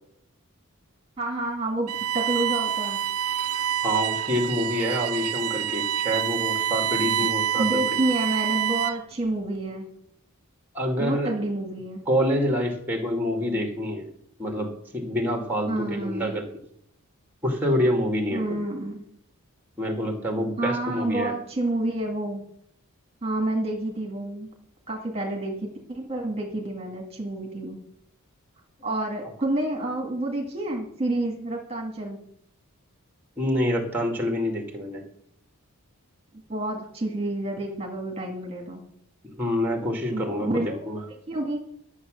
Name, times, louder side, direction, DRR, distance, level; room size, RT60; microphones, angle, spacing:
voice 1, 1.2-3.0 7.6-9.9 11.0-12.0 15.7-16.3 18.3-19.0 20.6-22.4 23.2-24.5 24.9-27.8 28.8-32.2 36.5-38.8 40.1-40.8 41.3-41.6, right 1 dB, 25° right, 1 dB, 2.1 m, -29 dB
Bowed string instrument, 1.9-9.1, right 10 dB, 85° right, 0.6 m, -27 dB
voice 2, 3.8-8.0 10.7-11.4 12.1-14.1 14.4-16.5 17.4-18.6 19.8-21.4 33.4-35.0 39.4-41.0, equal, 10° right, 2 dB, 2.3 m, -27 dB
12.5 x 7.5 x 6.5 m, 0.70 s
head